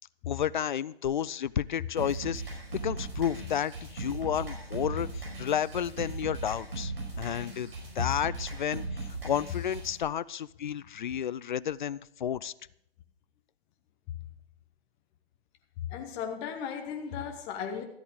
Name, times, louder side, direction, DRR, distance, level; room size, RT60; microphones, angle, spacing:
voice 1, 0.3-6.9 7.2-8.8 9.2-12.5, left 9 dB, 50° left, 20 dB, 0.4 m, -31 dB
sound 1, 2.0-10.0, right 3 dB, 70° right, 5.1 m, -38 dB
voice 2, 15.8-17.8, left 8 dB, 15° left, 5 dB, 0.7 m, -35 dB
13.0 x 8.3 x 5.2 m, 0.76 s
figure-of-eight pair, 145°, 31 cm